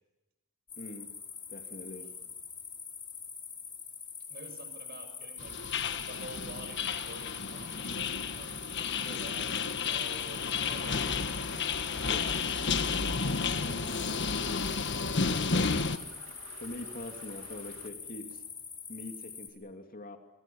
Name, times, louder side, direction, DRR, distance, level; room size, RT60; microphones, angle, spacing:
sound 1, 0.7-19.5, left 6 dB, 25° left, 4.3 m, -44 dB
voice 1, 0.8-1.1 1.5-2.1 12.0-12.4 15.4-15.8 16.6-18.4 18.9-20.2, left 1 dB, 45° left, 4 dB, 2.7 m, -43 dB
voice 2, 4.3-5.6 6.1-11.0 12.8-14.0, right 2 dB, 50° right, 8 dB, 6.5 m, -49 dB
sound 2, 5.4-16.0, left 5 dB, 60° left, 1.4 m, -32 dB
sound 3, 10.6-17.9, right 4 dB, 85° right, 2.8 m, -52 dB
26.0 x 26.0 x 7.2 m, 1.0 s
head